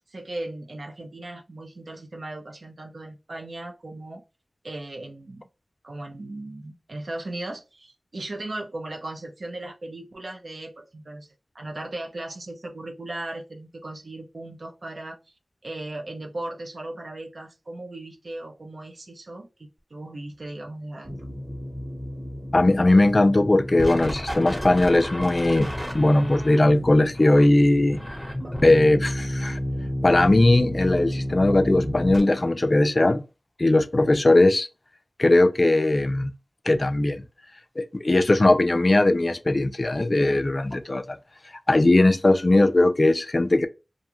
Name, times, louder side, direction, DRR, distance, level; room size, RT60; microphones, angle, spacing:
voice 1, 0.1-4.2 4.6-5.4 5.8-15.2 15.6-21.2, right 2 dB, 70° right, 0.5 m, -37 dB
sound 1, 21.0-32.2, equal, 10° right, 0.9 m, -31 dB
voice 2, 22.5-28.0 28.6-29.6 30.0-33.2 33.6-34.7 35.2-36.3 36.7-37.2 37.8-41.2 41.7-43.7, left 2 dB, 45° left, 0.3 m, -19 dB
2.5 x 2.3 x 2.9 m
wide cardioid pair, 70°, 0 cm